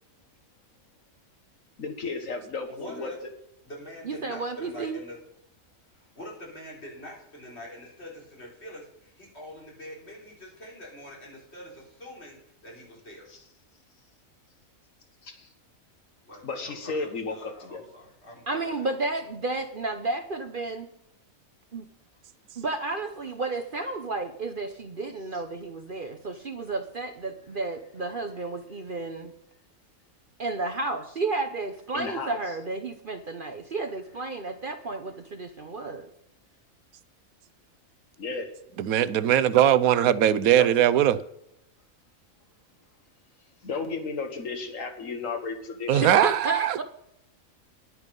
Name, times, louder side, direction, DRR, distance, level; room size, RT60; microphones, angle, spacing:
voice 1, 1.8-3.1 13.3-13.4 15.2-15.5 16.4-17.8 31.9-32.4 38.2-38.5 40.5-40.7 43.6-46.0, left 4 dB, 65° left, 1.7 m, -33 dB
voice 2, 2.7-3.2 3.6-5.2 5.9-12.4 12.6-13.3 16.2-18.9, equal, 50° left, 4.1 m, -44 dB
voice 3, 4.0-5.0 18.5-20.9 21.7-21.8 22.6-29.3 30.4-36.1 46.0-46.8, right 3 dB, 45° right, 0.9 m, -32 dB
voice 4, 38.8-41.2 45.9-46.8, right 11 dB, 85° right, 1.1 m, -20 dB
11.0 x 9.0 x 5.3 m
omnidirectional pair, 1.5 m